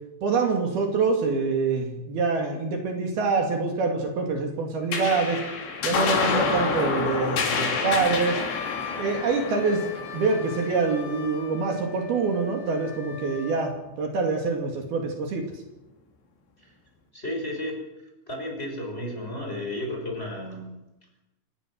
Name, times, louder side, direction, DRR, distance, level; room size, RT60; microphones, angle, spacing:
voice 1, 0.2-5.4 5.8-8.4 9.0-15.5, right 4 dB, 65° right, 2 dB, 4.2 m, -25 dB
sound 1, 4.9-11.7, left 5 dB, 85° left, 5.5 m, -28 dB
Wind instrument woodwind instrument, 6.3-13.8, left 4 dB, 70° left, 4.6 m, -40 dB
voice 2, 17.1-17.8 18.3-20.8, left 1 dB, 15° left, 1 dB, 5.9 m, -33 dB
28.5 x 17.0 x 6.4 m, 0.97 s
omnidirectional pair, 5.0 m